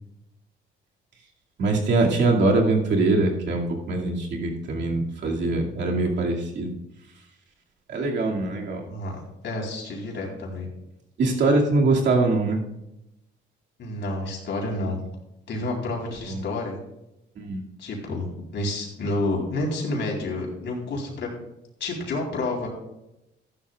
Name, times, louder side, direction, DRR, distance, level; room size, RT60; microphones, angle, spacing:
voice 1, 1.6-6.7 7.9-8.8 11.2-12.6 16.3-16.4 17.4-17.6, right 3 dB, 65° right, 0 dB, 2.4 m, -23 dB
voice 2, 8.9-10.7 13.8-15.0 15.5-16.8 17.8-21.3 21.8-22.7, left 2 dB, 65° left, -1 dB, 4.0 m, -29 dB
14.5 x 11.5 x 2.4 m, 0.88 s
cardioid pair, 90°, 20 cm